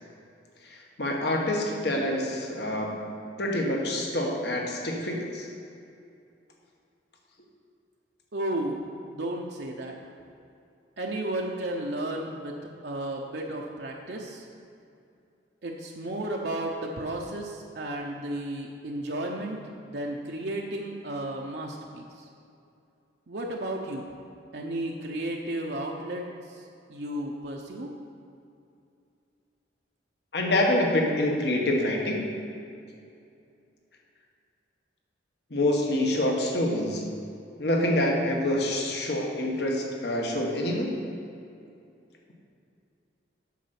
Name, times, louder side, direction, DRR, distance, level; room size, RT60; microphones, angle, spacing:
voice 1, 0.6-5.5 30.3-32.3 35.5-37.0 37.6-41.0, left 1 dB, 60° left, 0 dB, 1.3 m, -26 dB
voice 2, 8.3-8.8 9.1-10.0 11.0-12.5 12.8-14.4 15.6-22.3 23.3-24.1 24.5-27.9, right 1 dB, 60° right, -1 dB, 0.7 m, -33 dB
8.4 x 6.6 x 5.9 m, 2.5 s
head